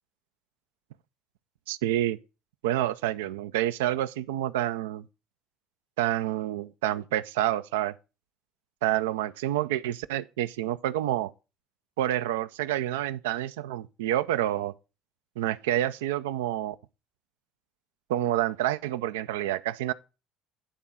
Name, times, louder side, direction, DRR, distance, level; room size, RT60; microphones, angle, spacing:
voice 1, 1.7-2.2 2.6-5.1 6.0-7.9 8.8-11.3 12.0-14.7 15.4-16.7 18.1-19.9, right 13 dB, 90° right, 0.4 m, -28 dB
10.0 x 3.7 x 5.5 m
hypercardioid pair, 70°, 0 cm